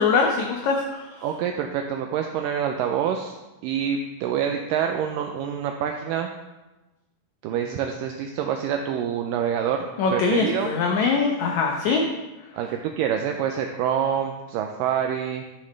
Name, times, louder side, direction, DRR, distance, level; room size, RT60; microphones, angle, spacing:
voice 1, 0.0-1.1 10.0-12.0, left 4 dB, 75° left, 1 dB, 1.7 m, -22 dB
voice 2, 1.2-3.4 3.6-6.3 7.4-9.9 10.1-10.7 12.5-15.4, right 8 dB, 80° right, 4 dB, 2.0 m, -26 dB
12.5 x 7.2 x 3.2 m, 1.1 s
omnidirectional pair, 4.3 m